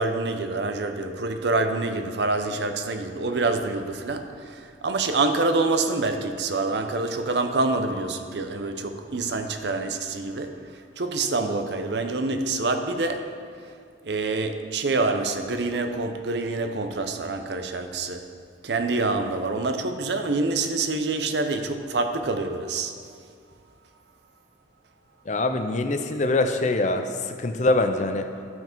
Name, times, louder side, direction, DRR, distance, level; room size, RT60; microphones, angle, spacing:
voice 1, 0.0-13.3 14.0-18.3 18.6-22.9, right 3 dB, 65° right, 7 dB, 0.6 m, -26 dB
voice 2, 25.3-28.3, left 2 dB, 40° left, 7 dB, 0.5 m, -24 dB
12.5 x 5.8 x 4.5 m, 2.2 s
head